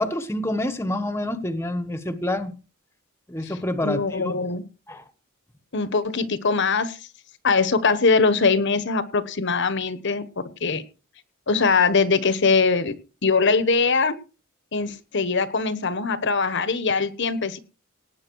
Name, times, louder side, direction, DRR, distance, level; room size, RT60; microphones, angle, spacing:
voice 1, 0.0-2.6 3.3-4.2 4.9-5.0, left 1 dB, 10° left, 10 dB, 1.2 m, -27 dB
voice 2, 3.8-4.6 5.7-7.0 7.4-10.8 11.5-13.0 13.2-14.2 14.7-17.6, left 4 dB, 55° left, 13 dB, 1.2 m, -22 dB
18.5 x 8.7 x 4.7 m, 0.34 s
head